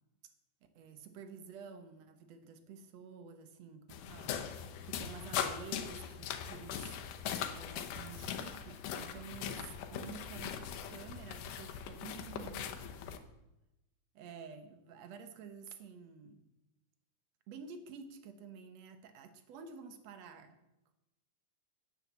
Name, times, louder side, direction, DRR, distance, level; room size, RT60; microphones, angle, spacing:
voice 1, 0.7-7.0 7.5-12.8 14.1-16.4 17.5-20.6, right 5 dB, 65° right, 9 dB, 2.0 m, -50 dB
sound 1, 3.9-13.2, left 8 dB, 80° left, 2.5 m, -40 dB
9.9 x 9.4 x 7.3 m, 0.94 s
omnidirectional pair, 3.7 m